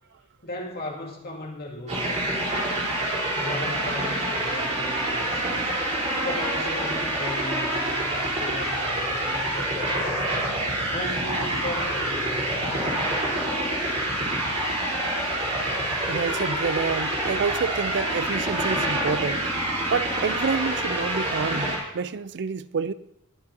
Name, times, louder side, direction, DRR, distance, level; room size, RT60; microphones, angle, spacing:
voice 1, 0.4-2.4 3.3-10.5 10.9-14.2, left 1 dB, 45° left, 2.3 m, -37 dB
sound 1, 1.9-21.8, right 1 dB, 35° right, 4.0 m, -27 dB
voice 2, 16.1-19.5 19.9-22.9, right 5 dB, 55° right, 0.5 m, -28 dB
21.0 x 9.1 x 2.8 m
head